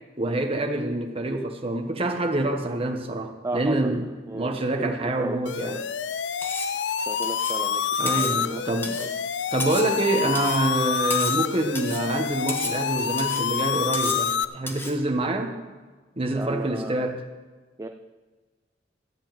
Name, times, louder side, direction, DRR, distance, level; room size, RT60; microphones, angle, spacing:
voice 1, 0.2-4.1 4.3-5.8 8.0-9.0 9.5-15.6 16.2-17.2, right 2 dB, 35° right, 4 dB, 1.2 m, -26 dB
voice 2, 3.4-3.9 4.3-5.9 7.1-8.6 9.0-9.1 16.3-17.1 17.8-17.9, right 2 dB, 20° right, 6 dB, 0.4 m, -35 dB
sound 1, 5.5-14.5, left 7 dB, 85° left, 0.5 m, -27 dB
Cutlery silverware, 6.4-6.8 7.2-7.6 8.1-8.4 8.8-9.1 9.6-10.0 10.4-10.6 11.1-11.5 11.8-12.1 12.5-12.8 13.2-13.5 13.9-14.3 14.7-15.0, left 2 dB, 15° left, 1.3 m, -34 dB
14.0 x 5.3 x 9.0 m, 1.3 s
head